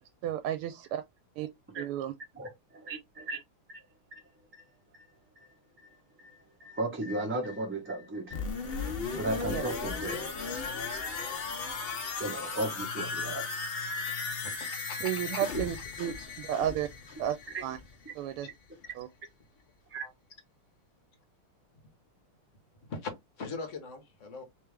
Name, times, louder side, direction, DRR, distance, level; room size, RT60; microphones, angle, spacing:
voice 1, 0.2-1.0 1.4-1.5 1.8-2.1 9.5-9.6 15.0-16.9 17.2-17.4 17.6-17.8 18.1-18.5 18.9-19.1, right 11 dB, 85° right, 1.5 m, -32 dB
voice 2, 2.4-3.4 3.7-3.8 4.1-4.2 4.5-4.6 4.9-5.0 5.4-5.5 5.8-5.9 6.2-8.8 9.1-10.6 12.2-13.4 17.5-17.6 19.9-20.0, right 2 dB, 10° right, 0.8 m, -36 dB
sound 1, 8.3-18.0 18.3-18.4, left 4 dB, 85° left, 0.5 m, -36 dB
voice 3, 12.9-13.4 14.2-15.4 20.0-20.1 22.9-23.1 23.4-24.4, left 4 dB, 45° left, 1.2 m, -42 dB
3.5 x 3.3 x 3.3 m
omnidirectional pair, 2.4 m